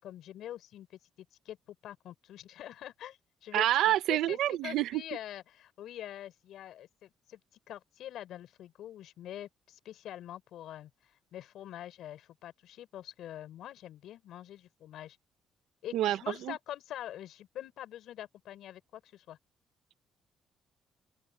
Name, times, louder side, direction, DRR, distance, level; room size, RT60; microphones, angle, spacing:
voice 1, 0.0-0.9 1.2-7.4 7.7-10.9 11.3-15.2 15.8-19.4, left 12 dB, 80° left, 5.8 m, -45 dB
voice 2, 3.5-5.0 15.9-16.2 16.5-16.6, right 13 dB, 85° right, 1.3 m, -27 dB
open air
cardioid pair, 90°, 0 cm